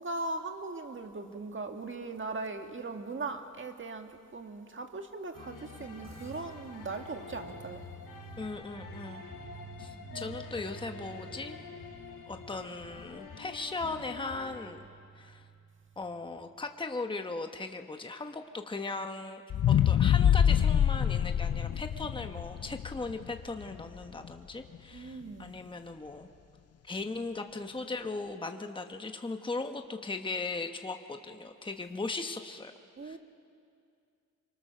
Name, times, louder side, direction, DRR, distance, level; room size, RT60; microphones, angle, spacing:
voice 1, 0.0-7.8 10.1-10.4 24.9-25.6 33.0-33.2, right 3 dB, 40° right, 5 dB, 1.7 m, -39 dB
sound 1, 5.3-14.7, left 5 dB, 90° left, 2.4 m, -47 dB
sound 2, 6.0-16.6, right 7 dB, 55° right, 2.7 m, -52 dB
voice 2, 8.4-9.2 9.8-11.6 12.3-14.8 15.2-15.4 16.0-19.4 19.7-26.3 26.8-32.7 33.0-33.2, left 3 dB, 15° left, 6 dB, 1.0 m, -38 dB
sound 3, 19.5-23.8 24.2-24.3, left 9 dB, 50° left, 0.5 m, -25 dB
24.5 x 24.0 x 6.7 m, 2.3 s
wide cardioid pair, 105°, 32 cm